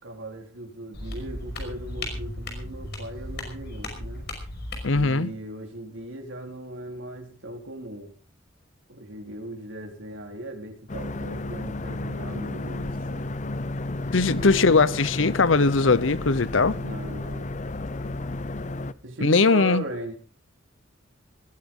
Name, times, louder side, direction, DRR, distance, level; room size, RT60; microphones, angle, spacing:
voice 1, 0.0-4.3 4.9-8.1 8.9-13.3 14.2-14.7 16.7-17.6 19.0-20.1, right 1 dB, 75° right, 4.0 m, -38 dB
sound 1, 0.9-5.0, left 1 dB, 55° left, 5.6 m, -35 dB
voice 2, 4.8-5.3 14.1-16.7 19.2-19.8, left 4 dB, 75° left, 0.9 m, -20 dB
sound 2, 10.9-18.9, left 2 dB, 40° left, 0.7 m, -32 dB
20.0 x 15.5 x 3.9 m
head